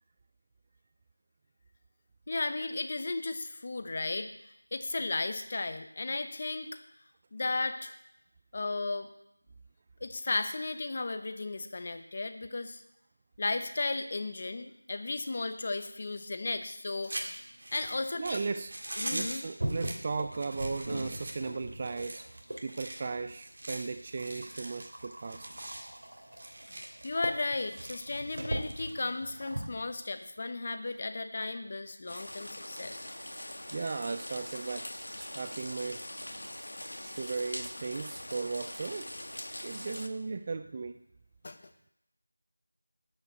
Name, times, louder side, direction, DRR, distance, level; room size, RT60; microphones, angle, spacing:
voice 1, 2.3-4.3 4.7-6.7 7.3-7.9 8.5-9.1 10.0-12.8 13.4-17.4 17.7-18.4 19.0-19.4 27.0-33.0 41.4-41.6, left 3 dB, 30° left, 9 dB, 0.9 m, -34 dB
sound 1, 17.1-29.4, right 1 dB, 45° right, 1.9 m, -43 dB
voice 2, 18.2-18.7 19.1-25.5 33.7-36.0 36.4-36.5 37.0-39.1 39.6-41.0, right 4 dB, 25° right, 9 dB, 0.3 m, -36 dB
sound 2, 19.6-22.8 23.3-29.8, right 1 dB, 70° right, 2.6 m, -40 dB
sound 3, 32.1-40.1, left 1 dB, 85° left, 1.4 m, -42 dB
12.5 x 5.7 x 7.9 m, 0.79 s
figure-of-eight pair, 175°, 0 cm